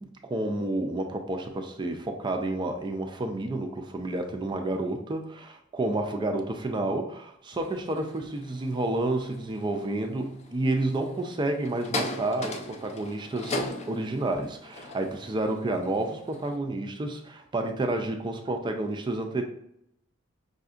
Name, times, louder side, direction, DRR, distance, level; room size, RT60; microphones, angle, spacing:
voice 1, 0.0-13.6 13.9-19.4, right 2 dB, 25° right, 4 dB, 0.4 m, -30 dB
sound 1, 7.5-16.6, left 2 dB, 35° left, 0.4 m, -39 dB
5.5 x 2.6 x 2.4 m, 0.74 s
head